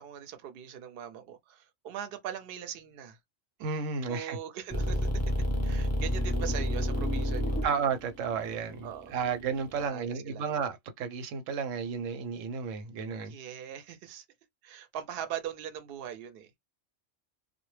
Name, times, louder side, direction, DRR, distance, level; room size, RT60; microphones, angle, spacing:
voice 1, 0.0-3.2 4.1-5.3 5.6-7.6 8.8-9.2 9.8-10.5 13.2-14.2 14.6-16.5, right 9 dB, 60° right, 0.7 m, -41 dB
voice 2, 3.6-4.4 7.6-13.4, right 6 dB, 90° right, 0.9 m, -32 dB
sound 1, 4.7-9.8, equal, 15° left, 0.6 m, -30 dB
2.1 x 2.1 x 3.1 m
omnidirectional pair, 1.3 m